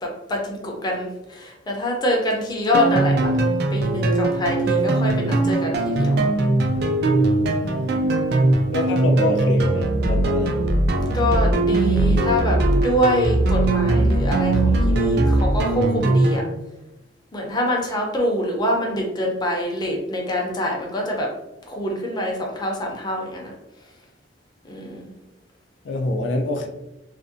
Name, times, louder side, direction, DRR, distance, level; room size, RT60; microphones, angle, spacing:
voice 1, 0.0-3.4 3.7-6.2 7.6-8.0 11.1-16.4 17.3-21.3 21.7-23.5 24.6-25.1, equal, 25° left, 0 dB, 0.5 m, -25 dB
sound 1, 2.7-16.5, right 2 dB, 60° right, 0.3 m, -20 dB
voice 2, 8.7-10.6 25.8-26.7, left 2 dB, 80° left, 5 dB, 0.3 m, -25 dB
2.5 x 2.1 x 2.5 m, 0.93 s
head